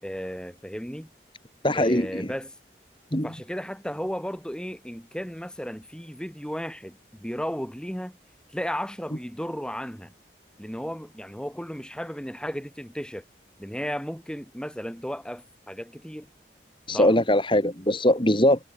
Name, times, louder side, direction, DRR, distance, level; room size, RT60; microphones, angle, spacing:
voice 1, 0.0-1.1 1.7-2.5 3.2-8.2 8.5-10.1 10.6-13.2 13.6-16.3 16.9-17.2, equal, 5° left, 6.7 m, -34 dB
voice 2, 1.6-2.3 3.1-3.3 16.9-18.6, left 1 dB, 30° left, 4.7 m, -21 dB
head